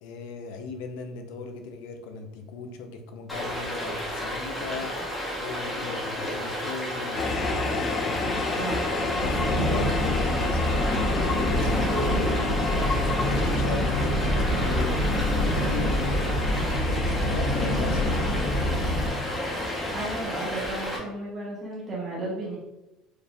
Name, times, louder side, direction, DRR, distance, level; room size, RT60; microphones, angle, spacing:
voice 1, 0.0-8.4 9.0-16.2 16.7-19.0, left 5 dB, 85° left, 5 dB, 0.6 m, -38 dB
Stream, 3.3-21.0, equal, 5° left, 1.0 m, -32 dB
sound 1, 7.2-20.2, left 3 dB, 25° left, 0.4 m, -31 dB
voice 2, 8.2-8.9 19.9-22.6, right 2 dB, 20° right, -6 dB, 1.2 m, -34 dB
sound 2, 9.2-19.1, left 1 dB, 45° left, 1.5 m, -26 dB
4.8 x 2.6 x 3.4 m, 0.95 s
cardioid pair, 170°, 0 cm